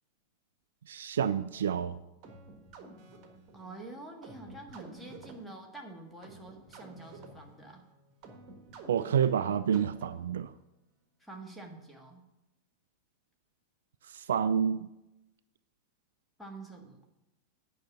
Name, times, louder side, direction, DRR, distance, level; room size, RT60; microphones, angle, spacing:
voice 1, 0.9-2.0 8.9-10.5 14.1-14.9, right 8 dB, 65° right, 14 dB, 0.3 m, -28 dB
sound 1, 2.2-10.4, right 2 dB, 35° right, 1.5 m, -51 dB
voice 2, 3.5-7.8 11.2-12.2 16.4-17.0, right 2 dB, 5° left, 1 dB, 1.7 m, -47 dB
8.9 x 5.6 x 7.0 m, 0.93 s
figure-of-eight pair, 90°, 0 cm